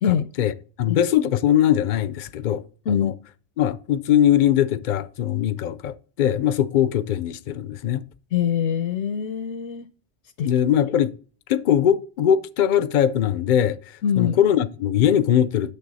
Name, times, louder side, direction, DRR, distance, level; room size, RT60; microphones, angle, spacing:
voice 1, 0.8-2.6 2.9-3.1 3.6-8.0 10.4-11.1 11.5-13.8 14.2-15.7, left 10 dB, 55° left, 0.6 m, -21 dB
voice 2, 8.3-9.9 10.4-10.5 14.0-14.3, left 8 dB, 75° left, 0.9 m, -23 dB
9.4 x 6.8 x 4.1 m
omnidirectional pair, 1.2 m